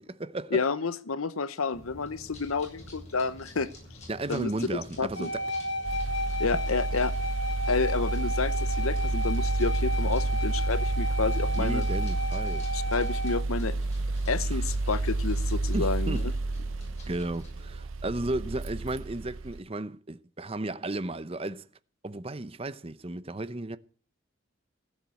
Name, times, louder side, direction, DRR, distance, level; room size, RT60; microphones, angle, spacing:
voice 1, 0.0-0.6 4.1-5.4 11.5-12.7 15.7-16.2 17.1-21.7 22.0-23.8, right 2 dB, 30° right, 0.7 m, -34 dB
voice 2, 0.5-3.7 4.3-4.5 5.0-5.3 6.4-7.1 7.7-11.8 12.7-13.8 14.3-16.2, left 4 dB, 85° left, 0.8 m, -30 dB
sound 1, 1.7-17.8, left 1 dB, 35° left, 6.6 m, -50 dB
sound 2, 5.1-13.4, equal, 60° left, 2.1 m, -33 dB
sound 3, 5.8-19.6, right 2 dB, 75° right, 0.8 m, -30 dB
16.0 x 7.4 x 8.4 m
head